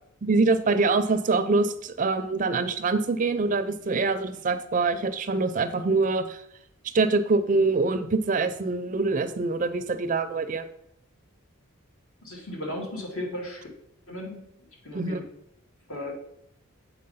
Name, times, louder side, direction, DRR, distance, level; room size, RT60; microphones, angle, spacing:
voice 1, 0.2-6.4 6.9-10.6 14.9-15.2, right 3 dB, 35° right, 10 dB, 0.4 m, -24 dB
voice 2, 12.2-13.7 14.1-14.4 14.8-15.2 15.9-16.1, left 1 dB, 75° left, -1 dB, 2.2 m, -35 dB
7.6 x 4.2 x 5.5 m, 0.75 s
head